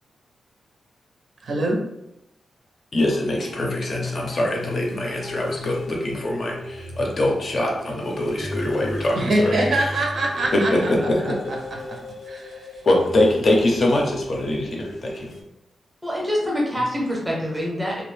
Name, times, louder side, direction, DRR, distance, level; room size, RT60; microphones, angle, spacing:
voice 1, 1.4-1.8 9.2-10.9 11.2-11.3 11.9-12.0 12.3-12.7, right 1 dB, 55° right, -1 dB, 0.5 m, -23 dB
voice 2, 2.9-9.9 10.5-11.4 12.8-15.3, left 1 dB, 40° left, 0 dB, 0.5 m, -23 dB
sound 1, 3.4-15.4, left 2 dB, 90° left, 0.6 m, -34 dB
voice 3, 16.0-18.0, equal, 5° right, -3 dB, 0.7 m, -25 dB
2.6 x 2.0 x 3.2 m, 0.84 s
wide cardioid pair, 165°, 0 cm